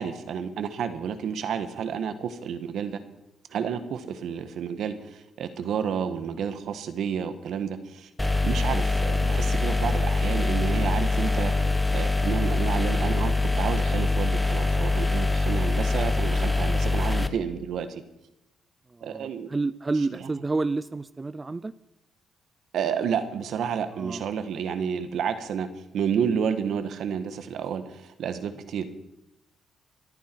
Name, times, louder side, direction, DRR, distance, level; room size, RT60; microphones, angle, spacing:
voice 1, 0.0-3.0 3.5-8.1 8.4-11.7 11.9-18.0 19.0-19.5 22.7-25.7 25.9-28.9, right 7 dB, 70° right, 10 dB, 1.5 m, -30 dB
sound 1, 8.2-17.3, left 3 dB, 10° left, 1.0 m, -24 dB
voice 2, 18.9-21.7 23.9-24.2, right 3 dB, 25° right, 15 dB, 0.4 m, -29 dB
25.5 x 9.3 x 4.6 m, 0.91 s
cardioid pair, 90°, 0 cm